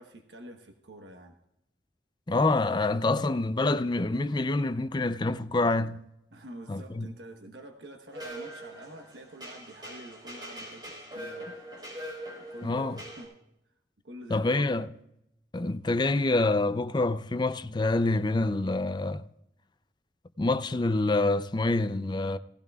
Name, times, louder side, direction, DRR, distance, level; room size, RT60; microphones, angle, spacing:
voice 1, 0.0-1.4 6.3-11.5 12.5-13.4 14.0-14.6, right 1 dB, 75° right, 1.1 m, -47 dB
voice 2, 2.3-6.0 6.7-7.1 12.6-13.0 14.3-15.0 15.5-19.2 20.4-22.4, left 2 dB, 25° left, 0.4 m, -26 dB
sound 1, 8.1-13.2, right 1 dB, 25° right, 4.5 m, -42 dB
17.5 x 16.0 x 2.3 m
head